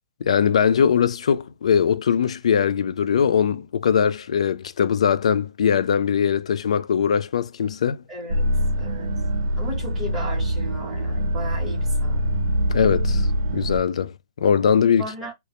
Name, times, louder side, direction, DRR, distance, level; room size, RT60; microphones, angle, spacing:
voice 1, 0.2-8.0 12.7-13.3 13.5-15.1, left 7 dB, 70° left, 0.4 m, -21 dB
voice 2, 8.1-8.5 8.8-9.1 9.6-12.2 15.0-15.3, equal, 5° right, 1.0 m, -34 dB
sound 1, 8.3-13.8, equal, 85° right, 0.5 m, -24 dB
2.1 x 2.0 x 2.8 m
hypercardioid pair, 170°, 3 cm